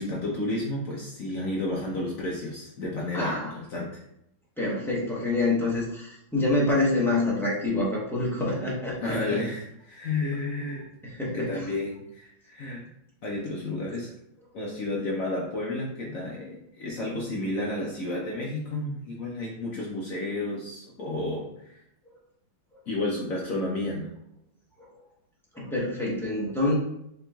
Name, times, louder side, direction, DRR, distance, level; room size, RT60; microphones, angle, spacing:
voice 1, 0.0-4.0 9.0-10.9 11.2-12.8 13.2-14.1 14.5-21.7 22.9-24.1, left 2 dB, 60° left, -3 dB, 0.9 m, -31 dB
voice 2, 3.1-3.5 4.6-9.4 11.0-11.6 25.5-26.7, left 2 dB, 5° left, -6 dB, 0.3 m, -26 dB
6.8 x 3.0 x 2.3 m, 0.78 s
omnidirectional pair, 2.1 m